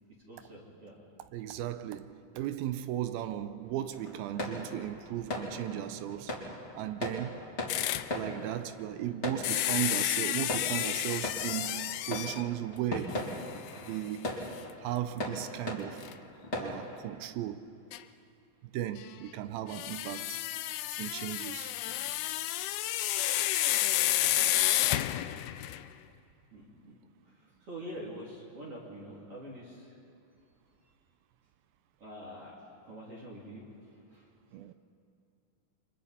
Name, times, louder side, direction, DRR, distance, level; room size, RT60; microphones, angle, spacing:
voice 1, 0.3-1.0 21.8-22.1 24.4-24.5 26.5-27.0 27.4-29.9 32.0-33.7 34.1-34.3, equal, 40° right, 3.7 m, -46 dB
voice 2, 1.3-6.4 6.8-7.4 8.1-11.8 12.1-13.2 13.9-14.3 14.8-16.1 16.6-17.7 18.7-20.4 21.0-21.7 34.5-34.7, right 12 dB, 85° right, 2.5 m, -36 dB
sound 1, 3.9-17.0, left 1 dB, 20° left, 2.6 m, -39 dB
sound 2, 7.7-8.1 9.4-12.5 13.1-13.2 13.7-13.8 16.0-16.1 17.9-18.0 19.7-25.9, left 14 dB, 85° left, 1.7 m, -30 dB
29.5 x 24.5 x 4.3 m
omnidirectional pair, 4.2 m